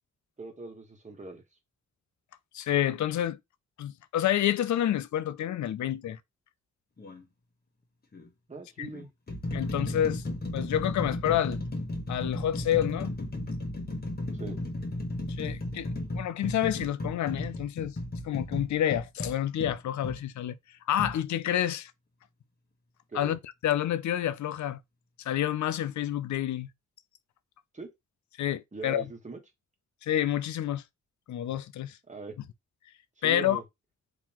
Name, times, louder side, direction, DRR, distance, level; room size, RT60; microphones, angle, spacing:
voice 1, 0.4-1.4 8.5-9.1 14.3-14.6 23.1-23.4 27.7-27.9 28.7-29.4 32.1-32.3 33.2-33.6, right 3 dB, 25° right, 1.3 m, -41 dB
voice 2, 2.5-3.4 3.8-6.2 8.8-8.9 9.5-10.2 10.5-11.6 12.1-13.1 15.4-17.9 18.2-20.6 20.9-21.9 23.1-24.8 25.3-26.7 28.4-29.0 30.0-30.8 31.3-32.0 33.2-33.6, left 11 dB, 70° left, 0.5 m, -28 dB
sound 1, 7.0-7.2 8.1-8.3 8.9-20.2 21.0-21.2, left 1 dB, 30° left, 1.1 m, -34 dB
3.8 x 2.9 x 2.9 m
wide cardioid pair, 100°, 30 cm